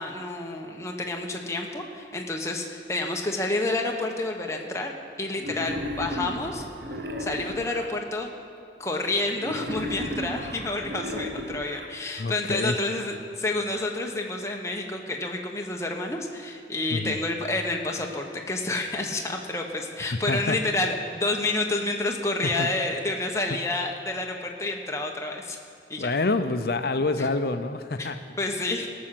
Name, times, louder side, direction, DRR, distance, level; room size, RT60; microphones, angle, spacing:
voice 1, 0.0-6.6 6.9-8.3 8.8-25.6 25.9-26.1 27.2-27.3 28.0-28.1 28.4-28.9, left 2 dB, 15° left, 1 dB, 0.9 m, -29 dB
Wild animals, 5.4-7.9 9.4-11.9, equal, 60° right, 0.9 m, -34 dB
voice 2, 12.2-12.8 16.9-17.2 20.3-20.6 22.4-22.7 26.0-28.2, left 3 dB, 55° left, 10 dB, 0.6 m, -27 dB
17.0 x 6.3 x 7.5 m, 2.5 s
head